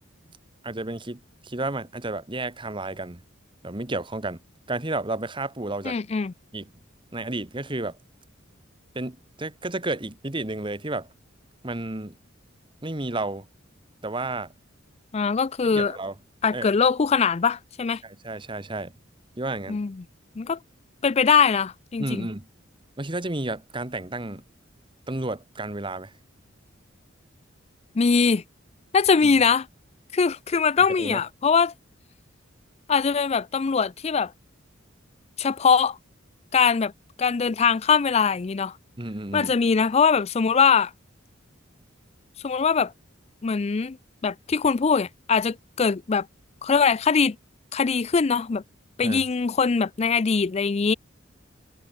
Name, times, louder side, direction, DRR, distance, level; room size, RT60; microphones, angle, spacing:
voice 1, 0.6-3.2 3.6-4.4 4.7-6.0 6.5-6.7 7.1-8.0 8.9-11.1 11.6-12.1 12.8-13.4 14.0-14.5 15.7-16.1 16.5-16.7 18.0-18.9 19.4-19.8 22.0-22.5 23.0-24.4 25.1-26.1 29.2-29.3 31.0-31.2 39.0-39.5 49.0-49.2, right 2 dB, 25° right, 1.5 m, -31 dB
voice 2, 5.8-6.3 15.1-16.0 16.4-18.0 19.7-20.0 20.4-20.6 21.0-22.3 28.0-28.4 28.9-29.7 30.1-31.7 32.9-34.3 35.4-36.0 36.5-36.9 37.2-38.7 39.3-40.9 42.4-42.9 43.4-44.0 44.2-46.3 46.6-47.4 47.7-48.6 49.0-50.9, left 5 dB, 30° left, 0.4 m, -22 dB
head